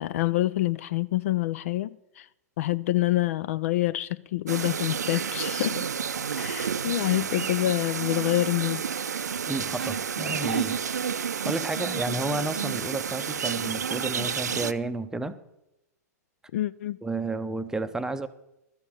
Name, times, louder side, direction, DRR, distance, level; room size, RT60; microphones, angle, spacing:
voice 1, 0.0-2.3 2.6-5.8 6.4-8.8 16.5-17.0, left 16 dB, 55° left, 0.4 m, -27 dB
sound 1, 4.5-14.7, right 7 dB, 75° right, 0.5 m, -30 dB
voice 2, 9.5-10.8 11.4-15.4 17.0-18.3, right 2 dB, 5° right, 0.7 m, -31 dB
13.0 x 7.1 x 7.7 m
figure-of-eight pair, 100°, 9 cm